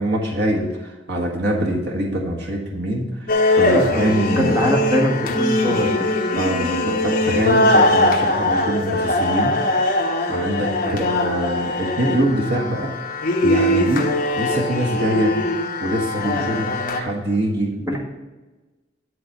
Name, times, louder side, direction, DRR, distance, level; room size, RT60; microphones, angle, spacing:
voice 1, 0.0-4.8 6.4-9.8 10.3-12.9 13.2-14.1 14.3-15.3 15.8-18.0, right 1 dB, 60° right, -1 dB, 1.5 m, -24 dB
sound 1, 3.3-17.0, left 1 dB, 45° left, 1.1 m, -21 dB
voice 2, 3.7-4.0 4.4-6.1 10.8-11.0 17.9-18.0, equal, 15° right, -1 dB, 1.7 m, -22 dB
11.0 x 4.1 x 6.7 m, 1.2 s
head